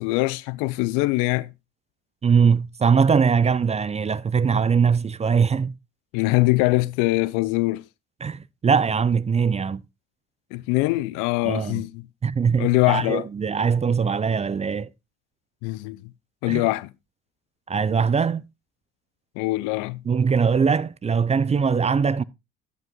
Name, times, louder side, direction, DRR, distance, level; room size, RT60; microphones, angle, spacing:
voice 1, 0.0-1.5 6.1-7.8 10.5-12.1 12.6-13.3 15.6-16.0 16.4-16.9 19.4-20.0, left 21 dB, 75° left, 0.6 m, -23 dB
voice 2, 2.2-5.7 8.2-9.8 11.4-11.8 12.2-14.9 16.5-16.6 17.7-18.4 20.1-22.2, right 6 dB, 20° right, 0.4 m, -21 dB
12.0 x 5.3 x 3.6 m
hypercardioid pair, 70°, 32 cm